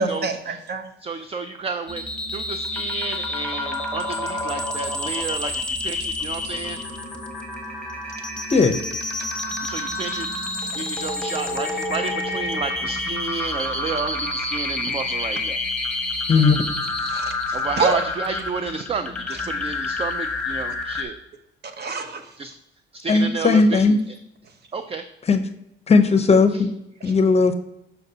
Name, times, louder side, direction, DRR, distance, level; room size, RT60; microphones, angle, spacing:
voice 1, 0.0-0.9 17.1-17.9 21.8-22.2, right 3 dB, 55° right, 6 dB, 0.9 m, -26 dB
voice 2, 1.0-2.1 2.3-6.8 9.6-10.3 10.8-15.6 17.5-21.2 22.4-22.5 22.9-23.8 24.7-25.0, right 4 dB, 30° right, 9 dB, 0.4 m, -30 dB
sound 1, 1.9-21.0, left 2 dB, 5° left, 1.2 m, -28 dB
voice 3, 23.1-24.0 25.3-25.4 25.9-26.7 27.0-27.5, left 4 dB, 30° left, 9 dB, 0.6 m, -16 dB
6.5 x 5.8 x 2.7 m, 0.84 s
cardioid pair, 90°, 20 cm